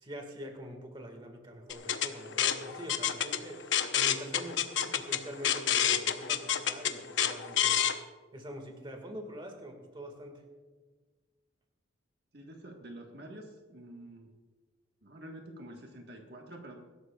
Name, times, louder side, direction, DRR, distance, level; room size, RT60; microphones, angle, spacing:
voice 1, 0.0-3.7 3.9-7.8 8.3-10.4, equal, 25° right, 4 dB, 1.8 m, -44 dB
sound 1, 1.7-7.9, left 9 dB, 70° left, 0.8 m, -29 dB
voice 2, 12.3-14.3 15.0-16.8, right 1 dB, 55° right, 1 dB, 1.4 m, -47 dB
23.5 x 12.5 x 2.3 m, 1.4 s
head